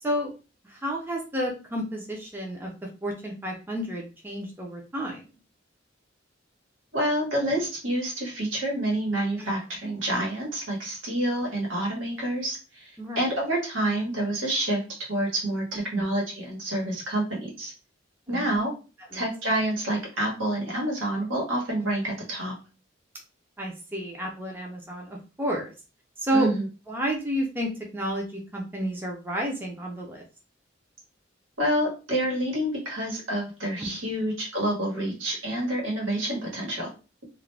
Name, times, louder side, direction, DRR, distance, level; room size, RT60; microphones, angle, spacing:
voice 1, 0.6-2.7 3.0-5.2 13.0-13.2 15.9-16.0 18.3-18.6 19.1-19.2 23.6-25.7 26.2-26.5 26.9-30.2 33.8-33.9, right 1 dB, 10° right, -1 dB, 0.5 m, -30 dB
voice 2, 6.9-14.8 15.1-17.7 18.3-18.7 19.1-22.5 26.3-26.7 31.6-36.9, right 1 dB, 85° right, -1 dB, 1.2 m, -28 dB
2.4 x 2.2 x 3.2 m, 0.32 s
head